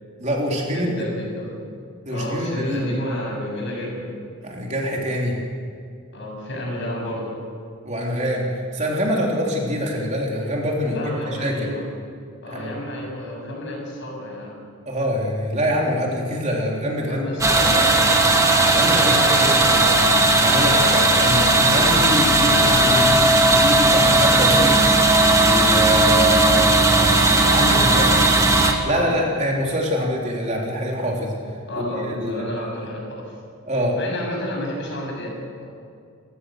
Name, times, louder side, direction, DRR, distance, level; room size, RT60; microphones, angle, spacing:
voice 1, 0.2-1.1 2.1-2.9 4.4-5.4 7.9-11.5 12.5-12.8 14.9-17.3 17.6-17.9 18.7-19.2 19.6-23.2 23.5-24.8 25.4-28.0 28.8-31.3 31.7-32.4 33.7-33.9, equal, 35° right, -2 dB, 3.5 m, -25 dB
voice 2, 0.7-1.6 2.1-4.1 6.1-7.3 10.8-11.9 12.4-14.6 17.1-18.2 19.0-19.6 27.7-29.2 31.7-33.4 33.9-35.6, left 1 dB, 55° left, -1 dB, 7.4 m, -31 dB
sound 1, 17.4-28.7, right 2 dB, 15° right, 1.7 m, -16 dB
29.5 x 15.5 x 6.6 m, 2.3 s
head